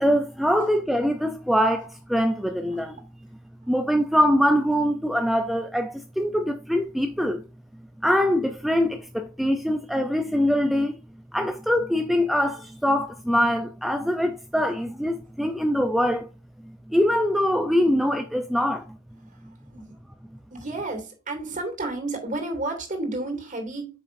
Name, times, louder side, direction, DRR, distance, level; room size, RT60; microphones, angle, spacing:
voice 1, 0.0-3.0 3.7-7.4 8.0-11.0 11.3-16.3 16.9-18.8, equal, ahead, 0.5 m, -23 dB
voice 2, 19.3-20.0 20.5-23.9, right 2 dB, 40° right, 2.7 m, -32 dB
8.8 x 6.0 x 2.6 m
head